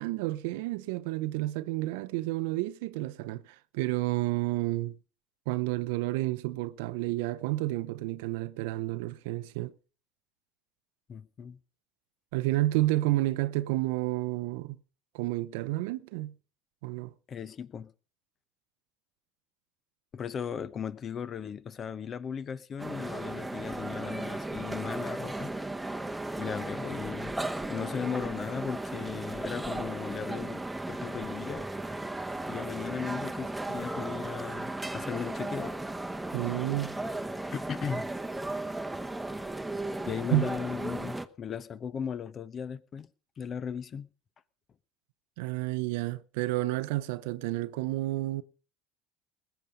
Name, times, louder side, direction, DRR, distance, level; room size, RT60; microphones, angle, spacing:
voice 1, 0.0-5.0 5.5-9.7 12.3-14.8 15.1-16.3 16.8-17.1 36.3-36.9 40.3-40.5 45.4-48.4, right 17 dB, 70° right, 0.6 m, -30 dB
voice 2, 11.1-11.6 17.3-17.9 20.1-25.5 26.4-27.4 27.6-31.7 32.5-35.7 37.5-38.1 40.0-43.1 43.4-44.1, left 7 dB, 40° left, 0.8 m, -37 dB
sound 1, 22.8-41.3, right 2 dB, 5° right, 1.0 m, -36 dB
20.0 x 8.3 x 5.2 m
hypercardioid pair, 75°, 0 cm